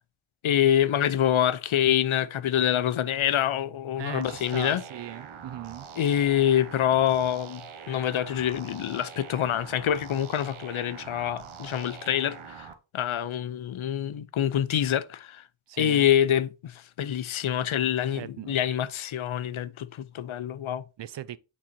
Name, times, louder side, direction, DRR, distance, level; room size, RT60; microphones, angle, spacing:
voice 1, 0.4-4.8 6.0-7.6 7.9-12.7 12.9-15.4 15.8-20.8, left 10 dB, 80° left, 0.6 m, -26 dB
voice 2, 4.0-5.8 15.7-16.1 18.1-18.6 21.0-21.4, right 11 dB, 65° right, 0.5 m, -38 dB
sound 1, 4.2-12.7, right 7 dB, 90° right, 1.0 m, -44 dB
8.7 x 3.9 x 2.7 m
wide cardioid pair, 75°, 47 cm